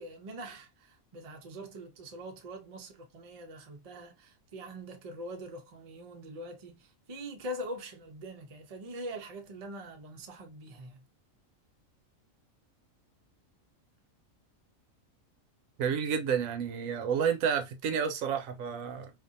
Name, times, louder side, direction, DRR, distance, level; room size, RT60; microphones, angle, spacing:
voice 1, 0.0-11.0, equal, 45° right, 0.5 m, -43 dB
voice 2, 15.8-19.1, right 7 dB, 80° right, 1.0 m, -30 dB
2.6 x 2.4 x 2.5 m
omnidirectional pair, 1.4 m